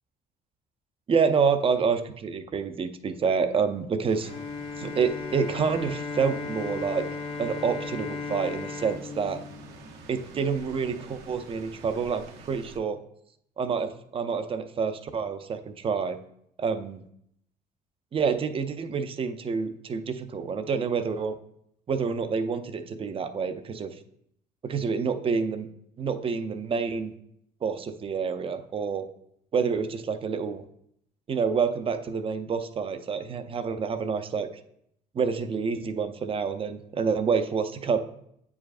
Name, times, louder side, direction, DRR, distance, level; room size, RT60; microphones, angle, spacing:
voice 1, 1.1-4.3 4.8-7.1 7.4-9.4 10.1-13.0 13.6-16.2 16.6-17.0 18.1-21.4 21.9-23.9 24.6-25.7 26.0-27.1 27.6-29.1 29.5-30.6 31.3-34.5 35.1-38.0, right 5 dB, 35° right, 9 dB, 0.5 m, -28 dB
sound 1, 4.0-12.8, right 4 dB, 80° right, 0.8 m, -48 dB
Bowed string instrument, 4.2-10.2, left 4 dB, 30° left, 0.5 m, -36 dB
8.4 x 4.8 x 2.5 m, 0.73 s
cardioid pair, 110°, 17 cm